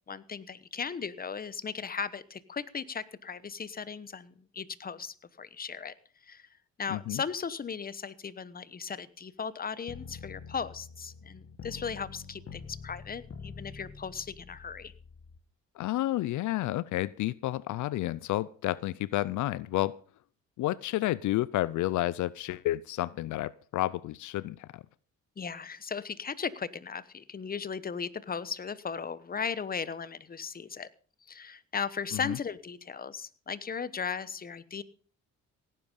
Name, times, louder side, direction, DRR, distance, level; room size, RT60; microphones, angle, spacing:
voice 1, 0.1-5.9 6.2-6.5 6.8-14.9 25.4-30.9 31.3-34.8, left 6 dB, 30° left, 17 dB, 1.0 m, -37 dB
voice 2, 6.9-7.2 15.8-19.9 20.6-24.8 32.1-32.4, left 16 dB, 75° left, 20 dB, 0.5 m, -30 dB
sound 1, 9.9-15.4, left 5 dB, 45° left, 1.3 m, -46 dB
17.0 x 10.0 x 5.4 m, 0.42 s
cardioid pair, 90°, 30 cm